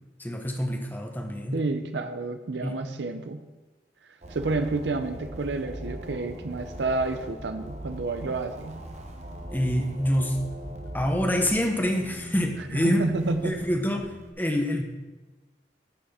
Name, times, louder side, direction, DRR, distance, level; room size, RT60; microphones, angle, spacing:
voice 1, 0.2-1.6 2.6-2.8 9.5-10.4 10.9-13.1 13.4-14.1 14.4-14.8, equal, 10° left, 3 dB, 1.0 m, -26 dB
voice 2, 1.5-3.4 4.3-8.8 12.7-13.6, right 3 dB, 80° right, 8 dB, 0.6 m, -29 dB
sound 1, 4.2-14.3, right 1 dB, 40° right, 0.9 m, -40 dB
12.5 x 5.9 x 4.3 m, 1.2 s
head